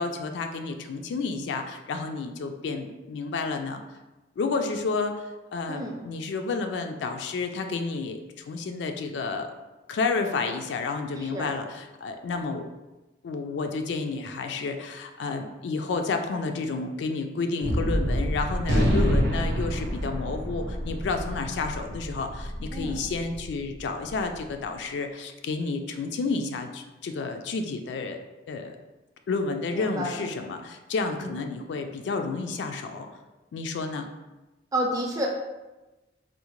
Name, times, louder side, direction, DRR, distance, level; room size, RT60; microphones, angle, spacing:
voice 1, 0.0-3.8 4.4-9.5 9.9-12.7 13.2-28.2 28.5-28.8 29.3-33.1 33.5-34.1, left 4 dB, 70° left, 6 dB, 0.3 m, -30 dB
voice 2, 5.7-6.0 11.2-11.5 22.7-23.0 29.7-30.2 31.2-31.3 34.7-35.3, right 1 dB, 20° right, 0 dB, 0.4 m, -30 dB
Gunshot gunfire, 17.6-24.2, equal, 75° right, 0.6 m, -27 dB
3.6 x 2.1 x 3.0 m, 1.1 s
head